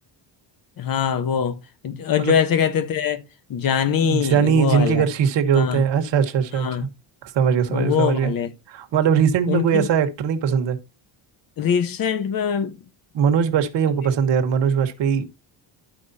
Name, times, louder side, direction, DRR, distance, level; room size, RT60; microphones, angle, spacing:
voice 1, 0.8-1.6 1.8-3.2 3.5-5.0 5.5-5.8 6.6-6.9 7.7-8.5 9.5-9.9 11.6-12.8 15.2-15.3, left 8 dB, 45° left, 1.0 m, -22 dB
voice 2, 4.0-6.7 7.2-8.3 8.7-10.8 13.1-15.3, right 7 dB, 60° right, 1.3 m, -20 dB
12.5 x 4.8 x 2.7 m
cardioid pair, 130°, 47 cm